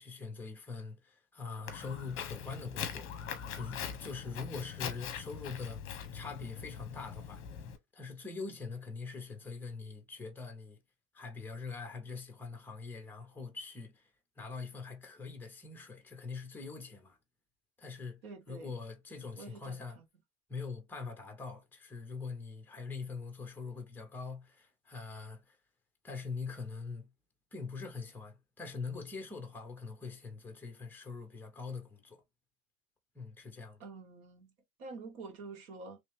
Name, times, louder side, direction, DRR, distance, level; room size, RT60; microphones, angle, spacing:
voice 1, 0.0-5.8 6.1-7.4 7.9-10.8 11.1-14.1 14.4-17.2 17.8-18.2 18.5-20.0 20.5-25.6 26.0-27.1 27.5-32.2 33.1-33.8, left 4 dB, 5° left, 0.4 m, -43 dB
Walk footsteps, 1.7-7.8, left 8 dB, 30° left, 0.8 m, -42 dB
voice 2, 18.2-18.7 19.4-20.0 33.8-34.5 34.8-36.0, right 3 dB, 75° right, 1.7 m, -47 dB
3.2 x 2.8 x 3.3 m
supercardioid pair, 155°, 43 cm